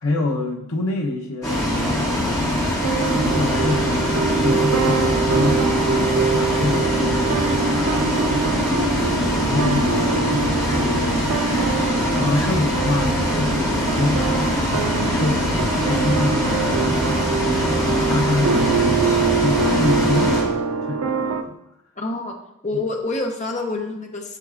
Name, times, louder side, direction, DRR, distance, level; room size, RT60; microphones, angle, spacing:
voice 1, 0.0-5.7 6.3-11.7 12.1-17.0 17.5-20.5 20.9-21.6 22.7-22.8, left 2 dB, 65° left, 1 dB, 1.0 m, -27 dB
Bus, 1.4-20.4, left 1 dB, 15° left, 1.8 m, -22 dB
sound 1, 2.8-21.4, right 5 dB, 80° right, 0.5 m, -24 dB
voice 2, 22.0-22.3 22.6-24.4, left 2 dB, 30° left, 2 dB, 0.9 m, -27 dB
7.5 x 6.7 x 2.5 m, 0.84 s
head